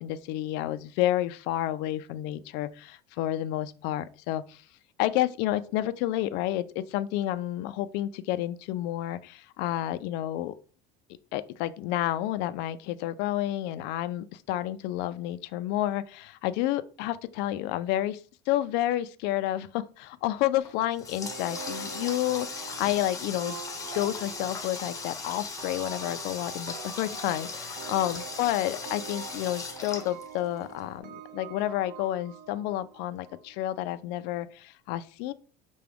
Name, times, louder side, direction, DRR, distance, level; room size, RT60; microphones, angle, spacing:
voice 1, 0.0-4.6 5.0-10.5 11.3-18.2 18.5-23.6 23.9-35.3, left 14 dB, 60° left, 0.4 m, -30 dB
Water tap faucet, 20.6-30.8, left 4 dB, 15° left, 0.8 m, -38 dB
sound 1, 21.2-33.6, right 8 dB, 50° right, 0.5 m, -45 dB
5.9 x 2.3 x 3.4 m
cardioid pair, 150°, 20 cm